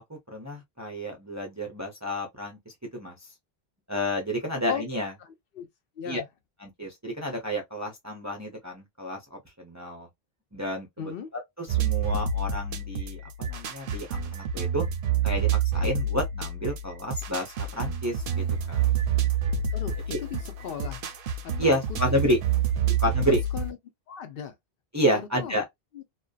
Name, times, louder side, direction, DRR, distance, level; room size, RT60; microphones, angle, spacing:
voice 1, 0.0-2.6 2.9-3.3 3.9-5.1 6.0-6.2 6.6-10.1 10.5-14.9 15.2-15.5 15.7-19.0 20.1-20.2 21.6-22.4 23.0-23.4 24.9-25.7, equal, 20° right, 0.5 m, -30 dB
voice 2, 6.0-6.3 11.0-11.3 19.7-21.1 21.4-21.8 22.1-22.2 23.3-23.8 24.1-24.6 25.3-25.6 25.9-26.0, left 8 dB, 65° left, 0.7 m, -37 dB
sound 1, 11.7-23.7, right 6 dB, 65° right, 0.7 m, -28 dB
2.5 x 2.2 x 2.3 m
omnidirectional pair, 1.1 m